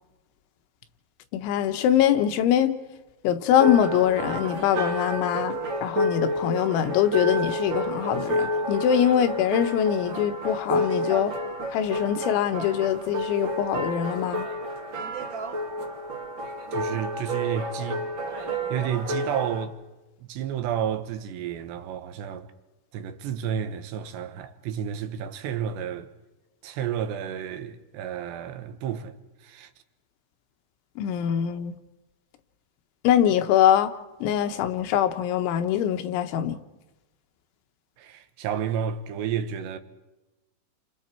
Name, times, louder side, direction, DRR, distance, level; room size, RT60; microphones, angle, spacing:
voice 1, 1.3-2.7 3.2-5.6 5.8-11.3 11.7-14.5 31.0-31.7 33.1-33.9 34.2-36.6, left 10 dB, 85° left, 3.5 m, -23 dB
sound 1, 3.5-19.6, equal, 50° right, 1.4 m, -30 dB
voice 2, 16.7-18.0 18.7-19.7 20.2-22.5 22.9-26.1 26.6-29.7 38.0-39.8, right 9 dB, 75° right, 3.2 m, -31 dB
29.5 x 25.5 x 4.5 m
omnidirectional pair, 5.3 m